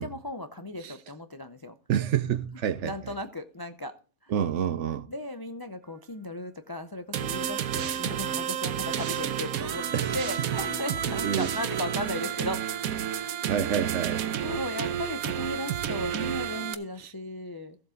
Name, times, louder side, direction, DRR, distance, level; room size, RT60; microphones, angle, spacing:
voice 1, 0.0-1.8 2.8-4.0 4.2-4.3 5.1-13.5 14.4-17.8, left 1 dB, 35° left, 0.3 m, -36 dB
voice 2, 1.9-2.9 4.3-5.1 9.9-10.2 11.2-11.5 13.4-14.2, right 9 dB, 65° right, 0.9 m, -28 dB
sound 1, 7.1-16.7, right 9 dB, 90° right, 1.2 m, -31 dB
15.0 x 7.7 x 3.8 m
omnidirectional pair, 1.5 m